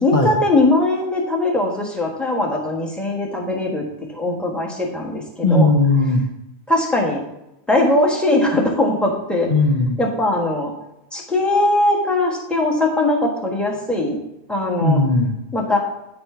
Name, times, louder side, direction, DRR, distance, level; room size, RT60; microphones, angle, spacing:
voice 1, 0.0-3.8 4.1-5.7 6.7-7.2 7.7-9.5 10.0-10.7 11.1-14.2 14.5-15.0 15.5-15.8, left 2 dB, ahead, -2 dB, 1.4 m, -20 dB
voice 2, 5.4-6.2 9.5-10.0 14.8-15.4, left 2 dB, 50° left, 1 dB, 0.9 m, -17 dB
9.3 x 4.4 x 5.6 m, 0.87 s
omnidirectional pair, 1.1 m